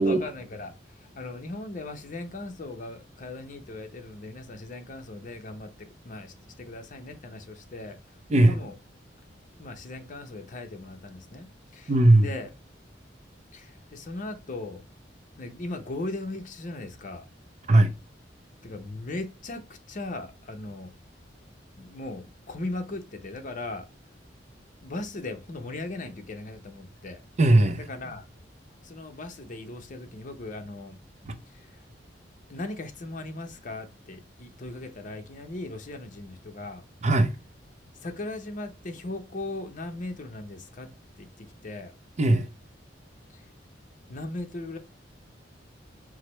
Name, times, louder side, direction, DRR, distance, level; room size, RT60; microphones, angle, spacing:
voice 1, 0.0-8.0 8.3-8.7 9.6-11.9 12.2-12.5 13.5-14.8 15.4-17.2 18.6-20.9 21.8-23.8 24.8-27.2 27.8-28.2 28.8-31.0 31.4-31.8 32.5-36.8 38.0-40.9 41.2-41.9 43.3-43.5 44.1-44.8, left 2 dB, 45° left, 0.7 m, -38 dB
voice 2, 11.9-12.3 17.7-17.9 27.4-27.8 31.3-31.4 37.0-37.3 42.2-42.5, right 1 dB, 40° right, 0.5 m, -19 dB
4.8 x 2.0 x 4.2 m
head